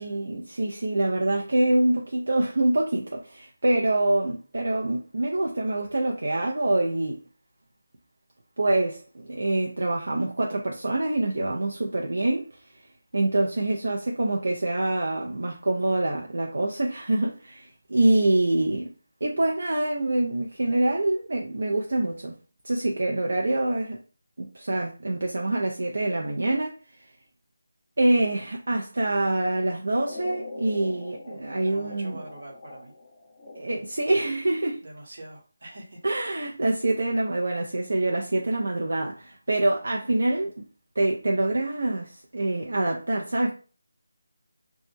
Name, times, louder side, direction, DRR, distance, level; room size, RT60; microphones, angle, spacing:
voice 1, 0.0-7.2 8.6-12.7 13.1-18.9 19.2-22.4 22.6-24.0 24.4-27.1 28.0-32.2 33.6-34.8 36.0-40.7 41.0-43.5, right 2 dB, 70° right, 0.5 m, -25 dB
sound 1, 30.0-34.1, left 2 dB, 40° left, 0.6 m, -42 dB
voice 2, 31.3-32.9 34.8-36.0, right 1 dB, 55° right, 1.0 m, -44 dB
2.1 x 2.1 x 3.2 m
figure-of-eight pair, 165°, 0 cm